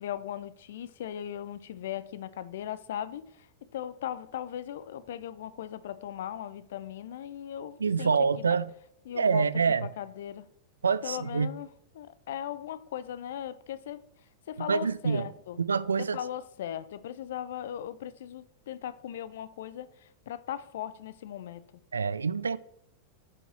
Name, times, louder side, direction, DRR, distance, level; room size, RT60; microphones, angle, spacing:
voice 1, 0.0-8.1 8.4-8.6 9.1-9.5 9.8-10.5 11.0-11.7 11.9-14.0 14.5-15.6 16.1-21.6, left 10 dB, 60° left, 0.4 m, -38 dB
voice 2, 7.8-8.7 9.2-9.9 10.8-11.5 14.7-15.3 15.6-16.2 21.9-22.6, right 5 dB, 75° right, 0.3 m, -26 dB
8.4 x 5.2 x 3.1 m
figure-of-eight pair, 90°, 0 cm